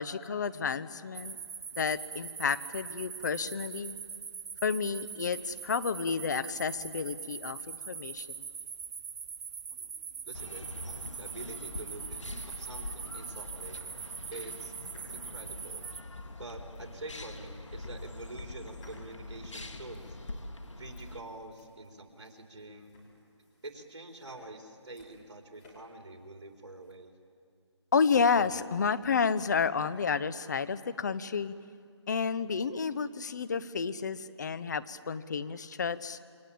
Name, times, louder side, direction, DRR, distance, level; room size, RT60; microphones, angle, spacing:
voice 1, 0.0-1.4 1.8-4.0 4.6-8.4 27.9-31.5 32.1-36.2, left 5 dB, 35° left, 14 dB, 0.9 m, -30 dB
sound 1, 1.1-16.0, right 6 dB, 30° right, 0.8 m, -42 dB
voice 2, 10.2-12.2 12.6-14.7 15.1-15.9 16.4-20.2 20.8-23.0 23.6-27.1, right 2 dB, 65° right, 3 dB, 3.9 m, -46 dB
sound 2, 10.3-21.2, left 2 dB, 90° left, 2.1 m, -44 dB
sound 3, 11.1-26.9, left 1 dB, 15° left, 5.0 m, -62 dB
27.5 x 23.0 x 8.8 m, 2.3 s
figure-of-eight pair, 160°, 15 cm